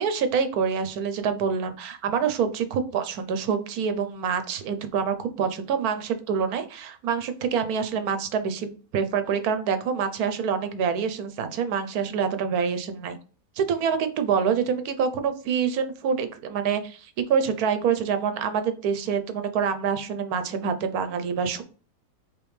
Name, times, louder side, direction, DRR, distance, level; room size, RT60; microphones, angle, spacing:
voice 1, 0.0-13.2 13.6-21.6, right 6 dB, 85° right, 9 dB, 1.2 m, -26 dB
5.1 x 3.3 x 3.2 m, 0.38 s
omnidirectional pair, 1.5 m